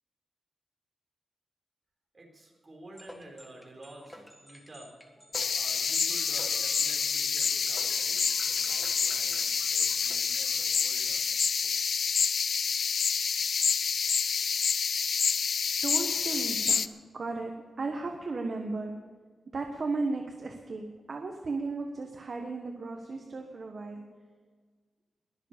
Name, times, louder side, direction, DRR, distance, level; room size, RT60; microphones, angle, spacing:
voice 1, 2.1-5.2 5.5-11.3, right 1 dB, 30° right, 0 dB, 3.9 m, -50 dB
sound 1, 2.9-10.8, equal, 5° left, 1.7 m, -51 dB
sound 2, 5.3-16.9, left 6 dB, 65° left, 0.5 m, -28 dB
voice 2, 15.8-16.9 17.1-17.5 17.8-18.9 19.5-24.0, right 3 dB, 45° right, 3 dB, 1.3 m, -35 dB
22.0 x 7.4 x 6.7 m, 1.5 s
wide cardioid pair, 155°, 0 cm